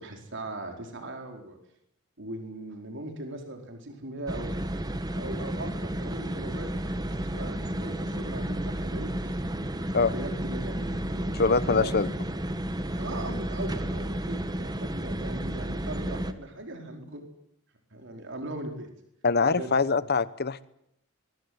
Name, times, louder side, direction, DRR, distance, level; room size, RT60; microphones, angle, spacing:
voice 1, 0.0-1.6 2.2-4.5 5.1-9.4 10.1-11.4 11.6-12.0 12.9-17.2 17.9-18.9 19.5-19.7, right 2 dB, 60° right, 4 dB, 4.6 m, -39 dB
sound 1, 4.3-16.3, right 1 dB, 20° right, 1.4 m, -32 dB
voice 2, 11.3-12.1 19.2-20.6, left 4 dB, 50° left, 16 dB, 1.0 m, -24 dB
25.0 x 23.0 x 8.0 m, 0.76 s
head